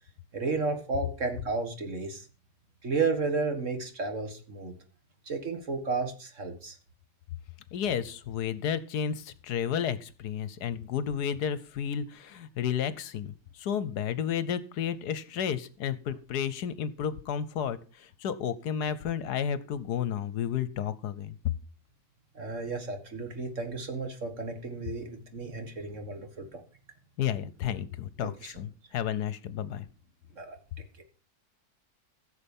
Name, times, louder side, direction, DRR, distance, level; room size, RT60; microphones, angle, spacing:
voice 1, 0.3-2.3 2.8-4.7 5.3-6.8 22.4-26.6 28.4-28.5 30.4-30.6, right 4 dB, 45° right, 6 dB, 2.0 m, -32 dB
voice 2, 7.7-21.5 27.2-29.9, left 8 dB, 70° left, 16 dB, 1.3 m, -32 dB
15.5 x 7.0 x 5.4 m, 0.36 s
omnidirectional pair, 1.8 m